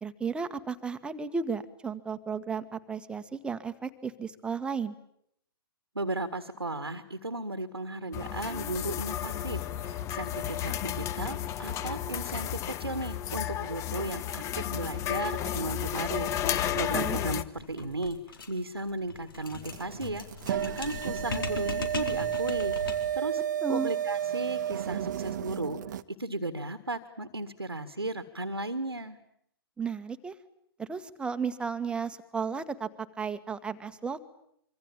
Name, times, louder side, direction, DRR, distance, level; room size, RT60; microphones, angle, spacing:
voice 1, 0.0-4.9 16.9-17.2 23.6-23.9 29.8-30.3 30.8-32.9 33.2-34.2, right 5 dB, 10° right, 9 dB, 1.7 m, -34 dB
voice 2, 6.0-23.4 23.7-29.2, right 2 dB, 80° right, 12 dB, 1.8 m, -35 dB
sound 1, 8.1-17.4, left 10 dB, 25° left, 1.3 m, -32 dB
sound 2, 17.5-23.2, left 4 dB, 60° left, 4.2 m, -39 dB
sound 3, 19.6-26.0, right 10 dB, 50° right, 1.2 m, -32 dB
26.0 x 25.5 x 8.9 m, 0.73 s
figure-of-eight pair, 115°, 13 cm